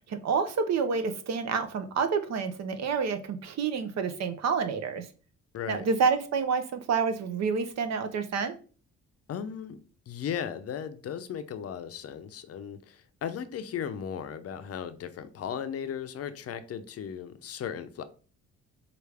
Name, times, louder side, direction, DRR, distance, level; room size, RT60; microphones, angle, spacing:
voice 1, 0.1-5.1 5.7-8.5, right 5 dB, 60° right, 0.7 m, -28 dB
voice 2, 5.5-5.9 9.3-18.0, left 8 dB, 55° left, 0.6 m, -36 dB
4.8 x 2.5 x 3.4 m
cardioid pair, 90°, 30 cm